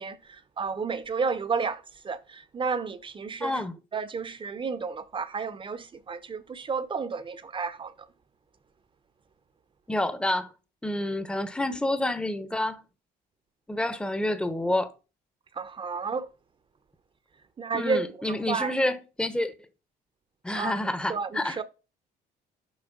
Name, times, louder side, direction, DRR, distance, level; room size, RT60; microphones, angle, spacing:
voice 1, 0.0-3.6 3.9-8.1 15.5-16.3 17.6-18.8 20.5-20.8 21.1-21.6, right 5 dB, 30° right, 0.9 m, -32 dB
voice 2, 3.4-3.8 9.9-10.5 10.8-12.8 13.7-14.9 17.7-19.5 20.4-21.6, left 1 dB, 5° left, 1.0 m, -28 dB
7.3 x 5.3 x 5.3 m
cardioid pair, 110°, 17 cm